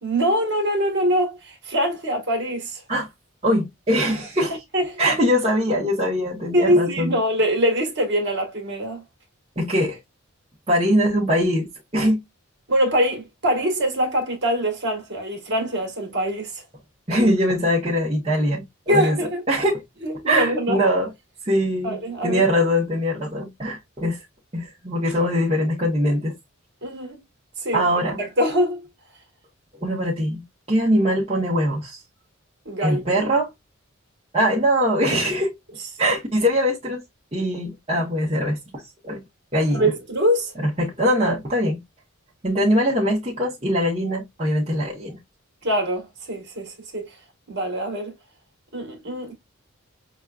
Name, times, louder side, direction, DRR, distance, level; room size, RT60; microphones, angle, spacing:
voice 1, 0.0-2.8 4.7-5.2 6.5-9.0 12.7-16.6 18.9-19.4 20.0-20.8 21.8-22.4 26.8-27.2 27.6-27.9 28.2-28.9 32.6-33.3 39.7-40.5 45.6-47.1 47.5-48.1 48.7-49.4, equal, 50° right, 1.5 m, -23 dB
voice 2, 3.4-4.5 5.0-7.2 9.6-10.0 10.7-11.7 11.9-12.2 17.1-19.2 19.5-19.8 20.3-21.1 21.4-22.0 22.2-24.2 24.5-26.4 27.7-28.2 29.8-32.0 32.8-33.5 34.3-35.5 36.0-37.0 37.3-39.2 39.5-39.9 40.6-41.8 42.4-45.2, equal, 25° right, 1.0 m, -22 dB
6.1 x 2.3 x 2.3 m
head